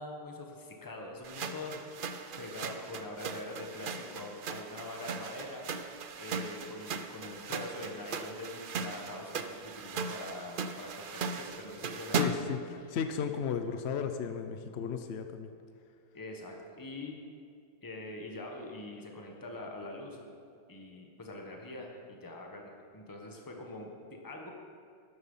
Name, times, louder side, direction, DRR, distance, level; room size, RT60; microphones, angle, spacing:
voice 1, 0.0-1.8 2.4-5.7 6.2-12.5 12.8-12.9 16.1-17.1 17.8-20.2 20.7-24.5, left 2 dB, 15° left, 1 dB, 1.3 m, -44 dB
sound 1, 1.2-12.6, right 4 dB, 60° right, 0.5 m, -38 dB
voice 2, 12.1-15.5, left 7 dB, 60° left, 7 dB, 0.7 m, -35 dB
13.0 x 10.0 x 5.6 m, 2.3 s
omnidirectional pair, 1.7 m